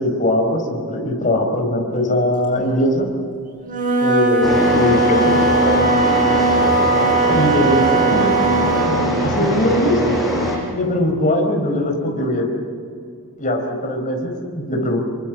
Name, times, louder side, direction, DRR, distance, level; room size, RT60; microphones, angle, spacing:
voice 1, 0.0-3.1 4.0-6.1 7.3-8.3 9.2-10.0 10.7-12.5 13.4-15.0, left 1 dB, 35° left, 3 dB, 4.6 m, -20 dB
Wind instrument woodwind instrument, 3.6-9.0, right 3 dB, 35° right, 7.4 m, -18 dB
sound 1, 4.4-10.6, equal, ahead, 6.3 m, -21 dB
27.5 x 23.5 x 7.5 m, 2.4 s
head